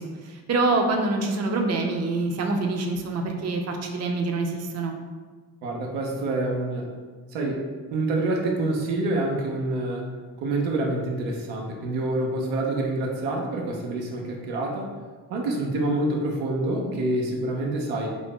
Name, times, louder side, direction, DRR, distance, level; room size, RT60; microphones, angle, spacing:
voice 1, 0.0-4.9, right 3 dB, 35° right, 2 dB, 0.6 m, -26 dB
voice 2, 5.6-6.9 7.3-7.6 7.9-10.1 10.4-14.9 15.3-18.1, right 2 dB, 85° right, 0 dB, 0.6 m, -27 dB
2.7 x 2.6 x 3.6 m, 1.5 s
hypercardioid pair, 45°, 46 cm